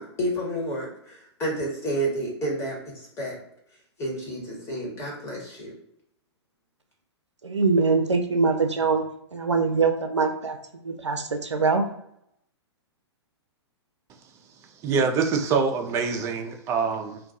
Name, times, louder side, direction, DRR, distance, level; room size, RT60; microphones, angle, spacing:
voice 1, 0.0-3.4 4.0-5.7, right 1 dB, 20° left, -3 dB, 1.0 m, -30 dB
voice 2, 7.4-9.0 9.3-11.9, right 4 dB, 90° right, 6 dB, 0.4 m, -23 dB
voice 3, 14.8-17.2, right 5 dB, 20° right, 4 dB, 0.3 m, -25 dB
2.3 x 2.2 x 2.6 m, 0.76 s
figure-of-eight pair, 110°, 14 cm